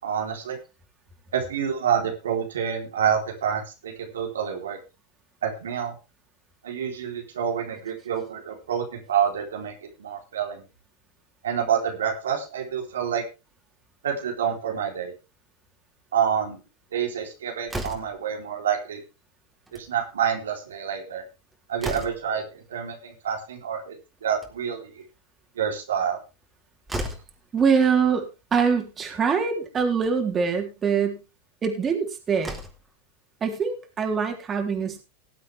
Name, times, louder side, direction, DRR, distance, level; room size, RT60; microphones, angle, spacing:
voice 1, 0.0-0.6 1.3-4.8 5.4-5.9 6.6-9.7 10.0-10.6 11.4-13.2 14.0-15.1 16.1-16.6 16.9-19.0 19.7-21.2 21.7-24.0 24.2-25.0 25.6-26.2, right 8 dB, 85° right, 2 dB, 3.9 m, -27 dB
Slam, 17.7-18.3 19.5-19.9 20.2-20.3 20.6-20.7 21.3-22.4 24.1-24.8 26.4-26.5 26.9-27.4 28.5-28.6 29.0-29.1 29.9-30.2 31.9-32.0 32.3-32.9, right 1 dB, 10° right, 3.8 m, -35 dB
voice 2, 27.5-28.2 28.5-31.2 31.6-32.5 33.4-35.0, right 6 dB, 25° right, 3 dB, 3.9 m, -23 dB
19.5 x 8.1 x 3.5 m, 0.29 s
hypercardioid pair, 105°, 0 cm